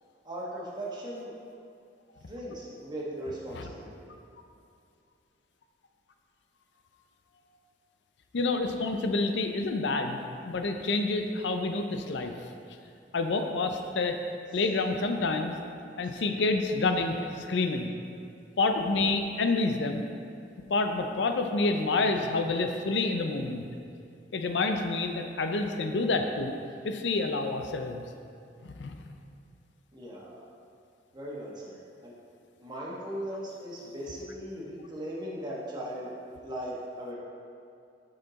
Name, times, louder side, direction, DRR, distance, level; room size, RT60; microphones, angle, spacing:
voice 1, 0.2-1.3 2.3-4.1 29.9-30.4 31.1-32.1 32.6-36.1 36.4-37.1, right 1 dB, 25° right, -5 dB, 1.3 m, -38 dB
voice 2, 8.3-12.3 13.1-14.2 14.5-15.5 16.0-17.9 18.6-20.0 20.7-23.6 24.3-26.5 26.8-28.0 28.8-29.0, left 3 dB, 80° left, 6 dB, 0.5 m, -28 dB
6.8 x 5.7 x 4.0 m, 2.5 s
head